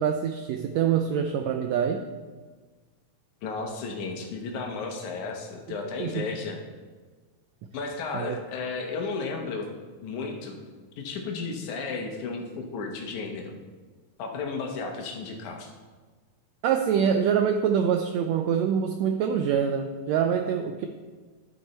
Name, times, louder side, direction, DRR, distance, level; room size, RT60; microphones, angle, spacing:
voice 1, 0.0-2.0 6.0-6.2 8.1-8.4 16.6-20.9, right 8 dB, 85° right, 5 dB, 1.5 m, -25 dB
voice 2, 3.4-6.6 7.7-9.7 10.0-10.6 11.0-13.5 14.2-15.7, left 4 dB, 75° left, 2 dB, 2.4 m, -33 dB
11.5 x 6.7 x 4.4 m, 1.4 s
omnidirectional pair, 3.6 m